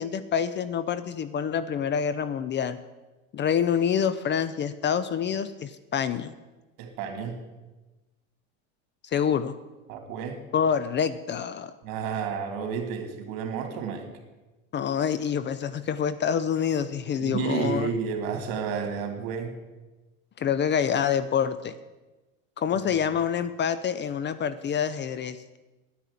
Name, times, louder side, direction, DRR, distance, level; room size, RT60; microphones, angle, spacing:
voice 1, 0.0-2.8 3.3-6.3 9.0-9.6 10.5-11.7 14.7-17.9 20.4-21.8 22.6-25.6, left 8 dB, 30° left, 14 dB, 0.6 m, -27 dB
voice 2, 6.8-7.4 9.9-10.4 11.8-14.1 17.2-19.5 22.7-22.8, right 6 dB, 65° right, 5 dB, 3.1 m, -31 dB
10.0 x 10.0 x 8.4 m, 1.1 s
supercardioid pair, 115°, 39 cm